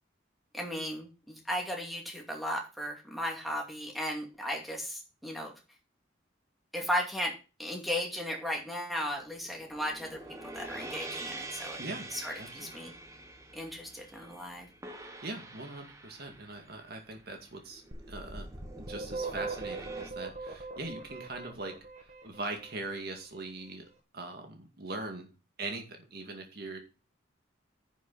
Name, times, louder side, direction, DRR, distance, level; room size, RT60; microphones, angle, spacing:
voice 1, 0.5-5.5 6.7-7.3 7.6-10.2 10.5-11.8 12.1-12.9 13.5-14.7, equal, ahead, 0 dB, 2.5 m, -35 dB
sound 1, 9.2-20.1, right 2 dB, 15° right, 1.3 m, -46 dB
voice 2, 11.8-12.1 12.4-12.9 15.0-18.5 18.8-21.8 22.0-23.8 24.1-25.3 25.6-26.8, right 2 dB, 55° right, 3 dB, 2.2 m, -41 dB
sound 2, 17.9-22.8, right 3 dB, 40° right, 1.9 m, -40 dB
10.5 x 7.3 x 4.2 m, 0.32 s
head